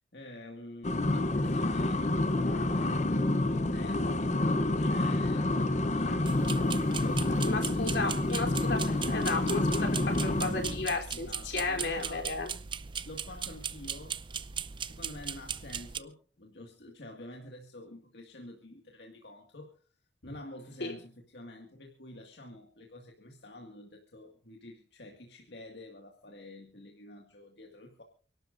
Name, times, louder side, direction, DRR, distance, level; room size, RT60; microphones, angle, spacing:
voice 1, 0.1-8.4 11.1-12.3 13.1-14.2 14.8-19.8 20.2-28.0, left 1 dB, 70° left, 2 dB, 2.0 m, -48 dB
sound 1, 0.8-10.9, left 2 dB, 40° left, 0.8 m, -28 dB
sound 2, 6.3-16.0, right 7 dB, 30° right, 0.6 m, -39 dB
voice 2, 7.4-12.5 20.8-20.9, left 3 dB, 85° left, 2 dB, 3.5 m, -34 dB
29.0 x 12.0 x 2.6 m, 0.37 s
head